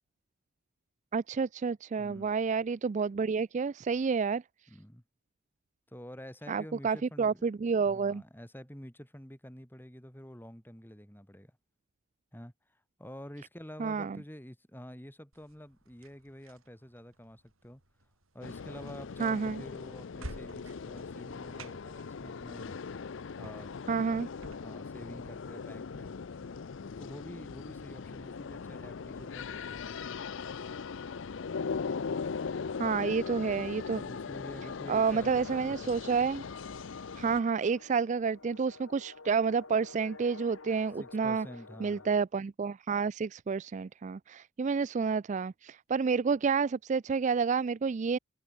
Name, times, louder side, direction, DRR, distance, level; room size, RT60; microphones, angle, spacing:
voice 1, 1.1-4.4 6.5-8.2 13.8-14.2 19.2-19.6 23.9-24.3 32.8-34.0 34.9-36.4 37.2-41.5 41.8-48.2, right 5 dB, 35° right, 0.3 m, -29 dB
voice 2, 1.9-2.3 4.7-5.0 5.9-7.5 7.8-11.5 12.3-12.5 13.0-17.8 18.3-22.8 23.4-23.7 24.5-26.1 27.0-30.1 31.8-32.2 34.0-35.9 41.0-42.1, equal, 10° left, 5.2 m, -48 dB
sound 1, 15.3-25.3, right 1 dB, 85° right, 5.6 m, -52 dB
sound 2, 18.4-37.4, left 5 dB, 65° left, 0.5 m, -40 dB
sound 3, 36.4-42.2, left 3 dB, 80° left, 2.4 m, -50 dB
head